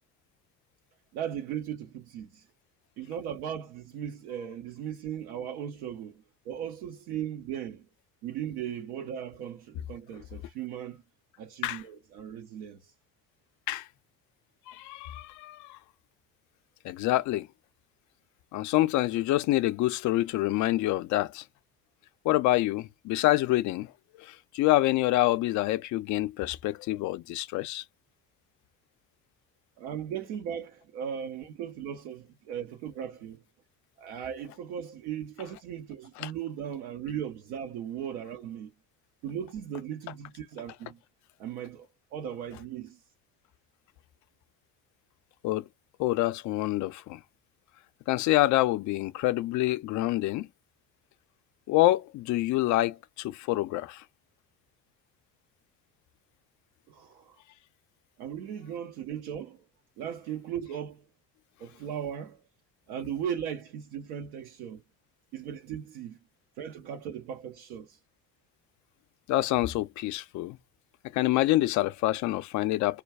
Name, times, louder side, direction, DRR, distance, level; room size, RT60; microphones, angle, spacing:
voice 1, 1.1-2.5 3.0-7.9 8.2-11.0 11.4-12.9 29.8-33.4 34.0-38.7 39.2-41.0 41.4-43.0 56.9-57.4 58.2-59.6 60.0-61.0 61.6-62.4 62.9-64.8 65.3-66.2 66.6-68.0, right 9 dB, 65° right, 0.7 m, -37 dB
voice 2, 14.7-15.8 16.8-17.5 18.5-21.4 22.2-23.9 24.2-27.8 36.2-36.3 45.4-45.7 46.0-47.2 48.1-50.5 51.7-54.0 69.3-70.6 71.1-73.0, left 16 dB, 40° left, 0.4 m, -26 dB
2.3 x 2.2 x 3.3 m
figure-of-eight pair, 60°, 48 cm